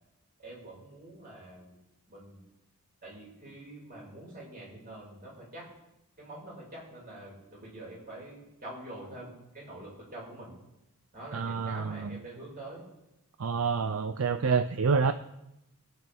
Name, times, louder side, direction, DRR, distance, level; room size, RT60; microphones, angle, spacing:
voice 1, 0.4-1.8 2.1-2.4 3.0-5.7 6.2-10.5 11.1-12.8, right 1 dB, 40° right, -4 dB, 5.4 m, -45 dB
voice 2, 11.3-12.1 13.4-15.1, right 5 dB, 65° right, 11 dB, 0.5 m, -27 dB
23.5 x 8.4 x 3.5 m, 0.88 s
head